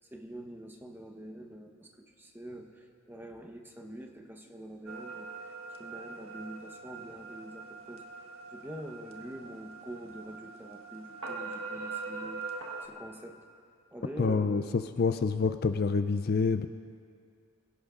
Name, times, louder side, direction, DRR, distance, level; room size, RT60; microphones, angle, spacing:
voice 1, 0.1-5.3 5.8-8.1 8.5-13.5 13.9-14.9, right 1 dB, 10° right, 3 dB, 1.0 m, -45 dB
sound 1, 4.9-12.9, right 4 dB, 65° right, 1.5 m, -42 dB
voice 2, 14.2-16.7, left 4 dB, 45° left, 9 dB, 0.4 m, -27 dB
25.5 x 17.0 x 2.5 m, 2.2 s
head